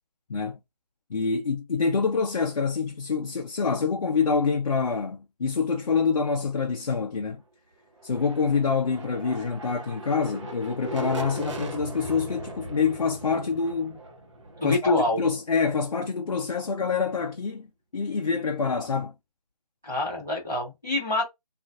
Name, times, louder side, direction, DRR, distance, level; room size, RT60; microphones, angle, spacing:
voice 1, 1.1-7.4 8.0-14.0 14.6-17.7 17.9-19.1, left 5 dB, 55° left, 0.5 m, -26 dB
sound 1, 8.0-15.8, right 1 dB, 50° right, 1.1 m, -39 dB
voice 2, 14.6-15.2 19.8-21.2, left 2 dB, 5° right, 0.4 m, -25 dB
3.8 x 2.4 x 2.3 m
figure-of-eight pair, 165°, 21 cm